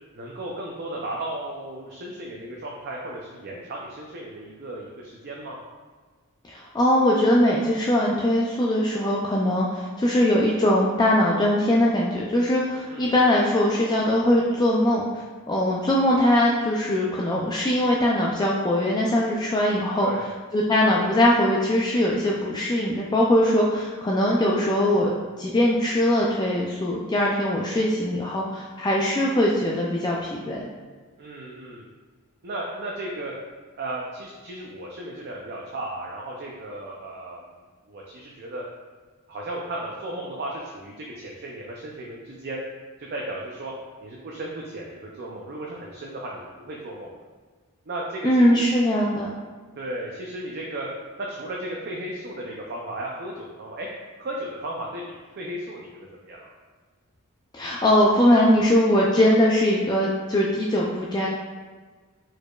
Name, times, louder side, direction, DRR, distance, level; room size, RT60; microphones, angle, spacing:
voice 1, 0.1-5.6 12.9-13.2 20.0-20.3 31.2-31.8 32.4-33.3 33.8-37.5 37.9-38.6 39.3-42.6 43.0-43.7 44.0-47.2 47.9-48.7 49.8-50.9 51.2-53.9 54.2-56.6, right 1 dB, 50° right, -2 dB, 0.5 m, -35 dB
voice 2, 6.4-20.1 20.5-30.7 48.2-49.3 57.5-61.3, left 1 dB, 20° left, -3 dB, 0.3 m, -21 dB
4.7 x 4.4 x 2.3 m, 1.4 s
head